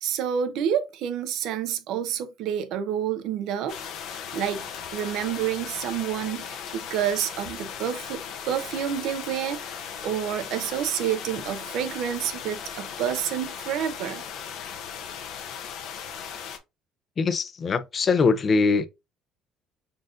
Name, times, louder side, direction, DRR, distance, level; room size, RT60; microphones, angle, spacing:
voice 1, 0.0-3.8 4.1-14.2, right 9 dB, 70° right, 0.6 m, -29 dB
sound 1, 3.7-16.6, left 8 dB, 70° left, 0.7 m, -37 dB
voice 2, 17.2-18.9, left 4 dB, 35° left, 0.5 m, -22 dB
3.9 x 3.7 x 2.5 m
cardioid pair, 115°, 0 cm